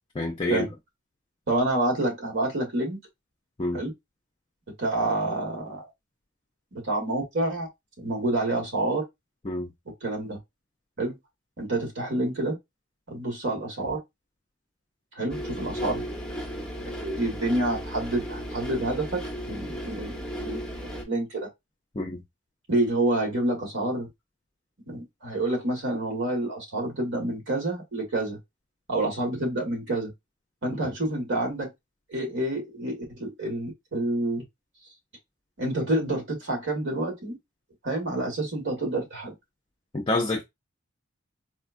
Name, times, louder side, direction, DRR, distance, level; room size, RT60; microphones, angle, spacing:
voice 1, 0.1-0.6 3.6-3.8 9.4-9.7 21.9-22.2 30.8-30.9 39.9-40.4, left 2 dB, 25° left, 0.5 m, -27 dB
voice 2, 1.5-3.0 3.7-3.9 4.8-5.9 6.7-7.7 8.0-9.0 10.0-10.4 11.0-11.2 11.6-12.6 13.1-14.0 15.1-16.0 17.0-20.6 21.1-21.5 22.7-24.1 24.9-28.4 28.9-30.1 30.6-31.7 32.1-34.4 35.6-37.4 37.8-39.3, right 2 dB, 60° right, 1.7 m, -28 dB
sound 1, 15.3-21.0, equal, 5° left, 0.9 m, -35 dB
4.2 x 2.3 x 2.5 m
head